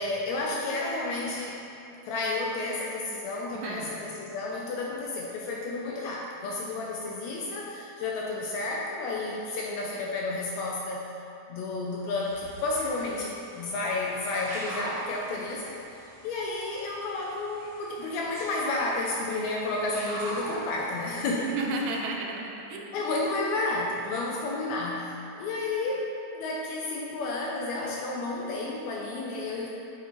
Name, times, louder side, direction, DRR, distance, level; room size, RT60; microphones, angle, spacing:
voice 1, 0.0-1.7 2.0-11.1 11.5-15.8 16.2-21.6 22.9-29.7, left 2 dB, 80° left, -2 dB, 1.7 m, -31 dB
voice 2, 3.5-4.0 21.5-22.9, right 2 dB, 85° right, 0 dB, 2.2 m, -33 dB
sound 1, 12.1-22.0, equal, 70° right, 2.6 m, -43 dB
6.3 x 5.6 x 3.0 m, 2.7 s
omnidirectional pair, 3.6 m